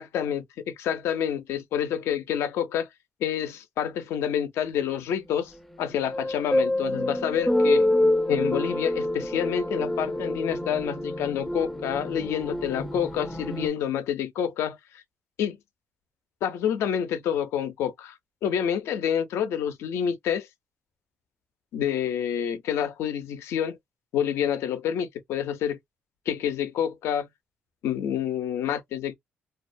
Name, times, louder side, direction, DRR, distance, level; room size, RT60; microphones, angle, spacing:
voice 1, 0.0-2.9 3.2-5.5 5.8-7.8 8.3-15.0 15.4-15.6 16.4-20.5 21.7-23.8 24.1-25.8 26.3-27.3 27.8-29.2, left 9 dB, 85° left, 0.5 m, -28 dB
sound 1, 5.8-13.7, left 1 dB, 5° left, 0.4 m, -27 dB
2.3 x 2.1 x 2.5 m
cardioid pair, 90°, 4 cm